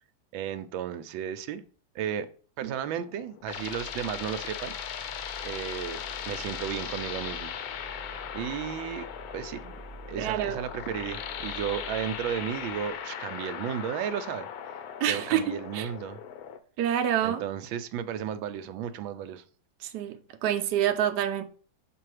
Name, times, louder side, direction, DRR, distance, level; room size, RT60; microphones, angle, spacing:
voice 1, 0.3-1.7 1.9-2.3 2.6-4.7 5.4-7.6 8.3-9.1 9.3-9.7 10.1-14.5 15.1-16.2 17.2-19.4, right 9 dB, 85° right, 1.4 m, -34 dB
sound 1, 3.0-16.6, left 8 dB, 70° left, 0.9 m, -38 dB
sound 2, 3.4-13.1, right 2 dB, ahead, 0.8 m, -48 dB
voice 2, 10.2-10.6 15.0-15.9 16.8-17.4 19.8-21.4, right 10 dB, 70° right, 1.1 m, -27 dB
6.8 x 3.0 x 4.8 m
omnidirectional pair, 2.1 m